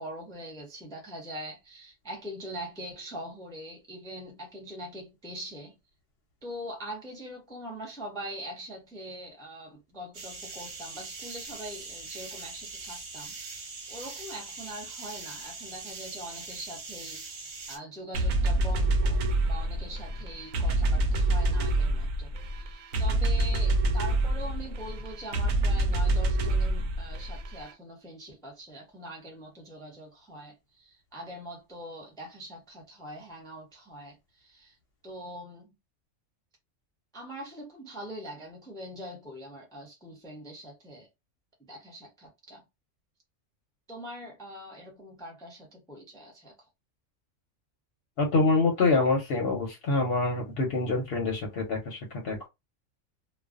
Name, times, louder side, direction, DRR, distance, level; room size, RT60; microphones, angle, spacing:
voice 1, 0.0-5.7 6.4-13.4 13.9-34.7 35.0-35.7 37.1-41.1 41.7-42.6 43.9-46.5, equal, 5° left, 0.3 m, -43 dB
sound 1, 10.1-17.8, right 3 dB, 55° right, 0.8 m, -42 dB
sound 2, 18.1-27.7, right 1 dB, 85° right, 1.0 m, -27 dB
voice 2, 48.2-52.0 52.2-52.5, left 3 dB, 60° left, 0.8 m, -26 dB
2.4 x 2.2 x 2.4 m
omnidirectional pair, 1.3 m